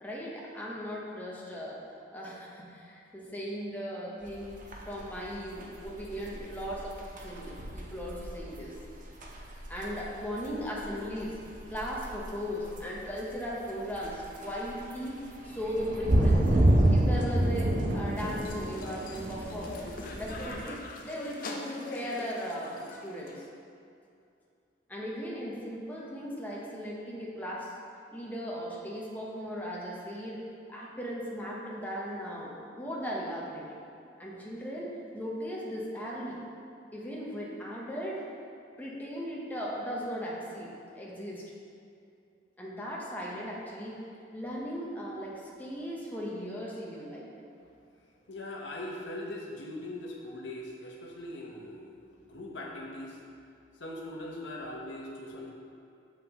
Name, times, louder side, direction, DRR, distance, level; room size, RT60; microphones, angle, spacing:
voice 1, 0.0-1.8 2.1-7.0 7.2-8.7 9.7-11.3 11.7-15.2 15.4-16.5 16.9-19.8 20.1-23.4 24.9-27.7 28.1-30.4 30.7-33.8 34.2-36.4 36.9-38.3 38.8-41.4 42.6-44.0 44.3-47.3, equal, 10° left, -5 dB, 0.9 m, -37 dB
sound 1, 4.2-20.6, right 1 dB, 45° right, 0.7 m, -30 dB
sound 2, 18.2-23.4, left 2 dB, 50° left, 0.6 m, -43 dB
voice 2, 48.3-53.2 53.8-55.5, left 1 dB, 85° left, -1 dB, 0.9 m, -41 dB
7.0 x 5.7 x 3.0 m, 2.5 s
head